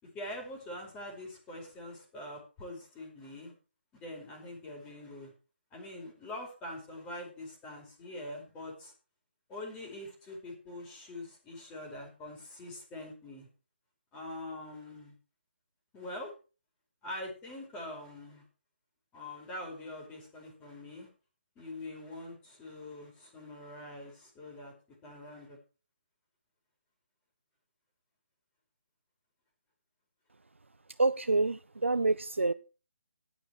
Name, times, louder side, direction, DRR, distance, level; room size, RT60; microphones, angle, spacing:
voice 1, 0.0-3.5 3.9-5.3 5.7-8.9 9.5-13.5 14.1-15.1 15.9-16.3 17.0-18.4 19.1-21.1 21.5-24.7 25.0-25.6, left 1 dB, 15° left, 1 dB, 4.9 m, -44 dB
voice 2, 31.0-32.5, right 3 dB, 85° right, 12 dB, 0.6 m, -27 dB
12.5 x 9.8 x 4.6 m, 0.34 s
figure-of-eight pair, 145°, 7 cm